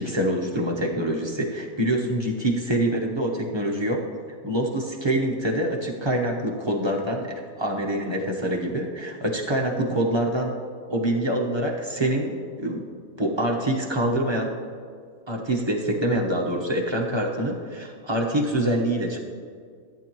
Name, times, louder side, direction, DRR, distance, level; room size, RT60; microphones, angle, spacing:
voice 1, 0.0-4.1 4.4-10.6 10.9-12.9 13.2-14.5 15.3-19.2, right 1 dB, 20° right, -1 dB, 0.8 m, -25 dB
14.5 x 9.0 x 3.0 m, 2.2 s
omnidirectional pair, 1.6 m